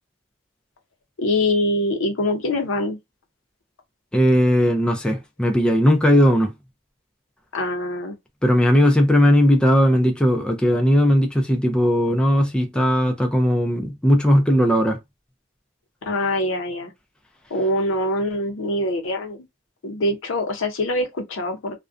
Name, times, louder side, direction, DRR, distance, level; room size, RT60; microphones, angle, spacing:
voice 1, 1.2-3.0 7.5-8.2 16.0-16.9 17.5-19.5 19.8-21.8, left 1 dB, 70° left, 0.6 m, -24 dB
voice 2, 4.1-6.5 8.4-15.0, equal, 5° left, 0.3 m, -18 dB
2.4 x 2.1 x 2.4 m
head